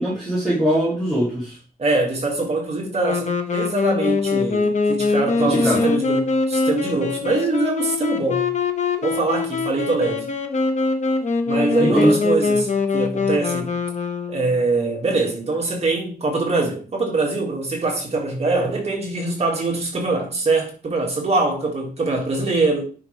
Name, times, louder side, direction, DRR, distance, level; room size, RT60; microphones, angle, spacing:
voice 1, 0.0-1.6 5.4-5.8 11.8-12.1, right 1 dB, ahead, 3.2 m, -21 dB
voice 2, 1.8-8.5 9.0-10.3 11.5-13.7 14.3-22.8, right 3 dB, 45° right, 2.3 m, -23 dB
Wind instrument woodwind instrument, 3.0-14.7, left 4 dB, 50° left, 1.0 m, -23 dB
9.8 x 5.8 x 3.5 m
wide cardioid pair, 170°, 15 cm